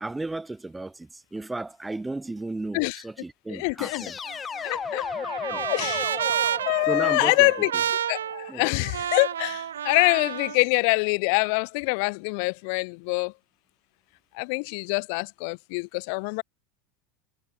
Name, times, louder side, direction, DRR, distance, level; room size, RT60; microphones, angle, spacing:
voice 1, 0.0-4.2 5.5-5.7 6.9-7.5 8.5-8.6, right 2 dB, 10° right, 2.6 m, -34 dB
voice 2, 3.5-4.0 4.6-5.1 5.7-6.3 6.7-7.7 8.1-13.3 14.3-16.4, left 36 dB, 65° left, 0.6 m, -25 dB
sound 1, 3.8-8.7, left 6 dB, 25° left, 5.6 m, -36 dB
Trumpet, 4.3-10.6, right 9 dB, 90° right, 0.9 m, -30 dB
hypercardioid pair, 95°, 0 cm